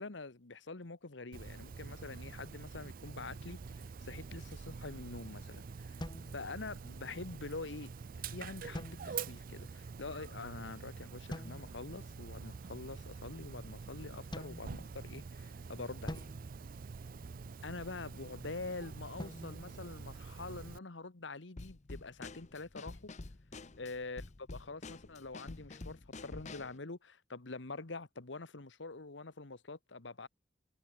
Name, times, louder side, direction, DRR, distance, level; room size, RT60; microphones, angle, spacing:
voice 1, 0.0-6.0 6.3-7.9 8.3-16.3 17.6-23.1 23.8-30.3, left 3 dB, 80° left, 1.4 m, -45 dB
Dog, 1.3-20.8, right 5 dB, 50° right, 0.4 m, -46 dB
sound 1, 6.0-7.1 8.7-9.5 11.3-12.0 14.3-15.4 16.1-17.5 19.2-20.7, left 1 dB, 25° left, 2.0 m, -48 dB
Drum kit / Snare drum, 21.6-26.8, left 2 dB, 40° left, 0.8 m, -48 dB
head